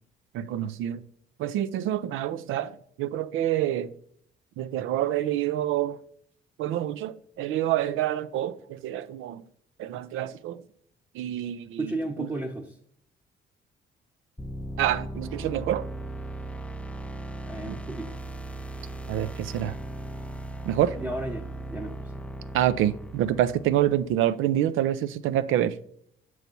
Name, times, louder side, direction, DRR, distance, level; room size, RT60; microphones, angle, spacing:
voice 1, 0.3-1.0 1.4-3.9 4.6-6.0 6.6-9.4 9.8-10.6 11.2-11.9 14.8-15.9 17.7-17.8 19.1-19.7 20.7-20.9 22.5-25.7, right 12 dB, 90° right, 0.4 m, -27 dB
voice 2, 11.8-12.7 17.5-18.1 21.0-22.2, right 2 dB, 10° right, 0.7 m, -34 dB
sound 1, 14.4-24.2, right 1 dB, 5° left, 0.3 m, -38 dB
6.8 x 3.1 x 5.2 m
cardioid pair, 90°, 20 cm